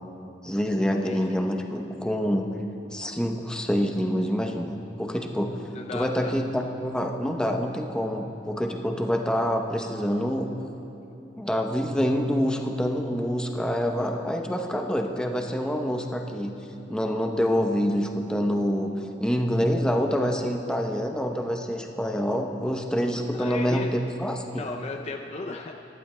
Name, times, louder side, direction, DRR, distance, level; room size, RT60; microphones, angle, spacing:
voice 1, 0.4-2.5 2.9-5.5 5.9-10.5 11.4-16.5 16.9-18.9 19.2-24.7, equal, 5° left, 2 dB, 0.8 m, -26 dB
voice 2, 1.0-1.4 5.7-6.3 23.3-23.9 24.5-25.7, left 3 dB, 40° left, 2 dB, 0.5 m, -35 dB
23.5 x 12.0 x 2.2 m, 3.0 s
head